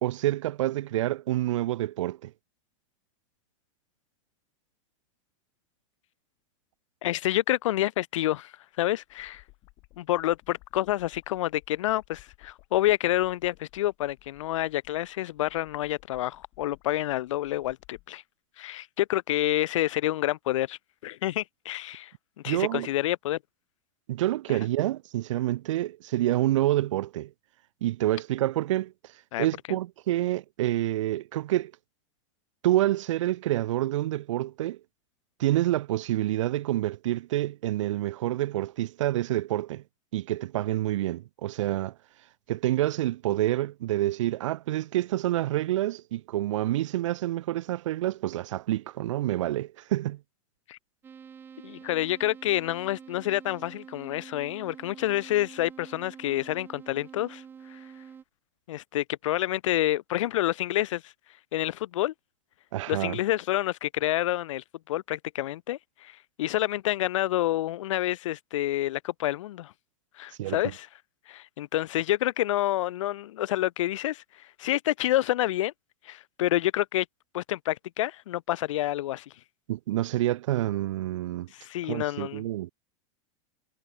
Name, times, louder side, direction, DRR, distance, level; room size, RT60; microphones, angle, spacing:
voice 1, 0.0-2.3 22.4-22.9 24.1-27.3 27.8-28.9 29.4-31.7 32.6-34.8 35.4-39.8 40.1-41.9 42.5-50.2 62.7-63.2 70.4-70.6 79.7-81.5 81.9-82.7, right 14 dB, 70° right, 0.9 m, -27 dB
voice 2, 7.0-8.5 8.8-9.4 10.0-18.2 18.6-22.1 22.4-23.4 24.5-24.6 29.3-29.8 50.7-50.8 51.6-57.4 57.7-57.8 58.7-61.1 61.5-62.1 62.9-69.7 70.2-70.9 71.3-75.7 76.0-77.1 77.3-79.3 81.5-82.4, left 14 dB, 75° left, 0.7 m, -28 dB
sound 1, 9.0-18.1, left 24 dB, 35° left, 4.0 m, -58 dB
sound 2, 51.0-58.2, right 7 dB, 15° right, 1.9 m, -47 dB
supercardioid pair, 175°, 16 cm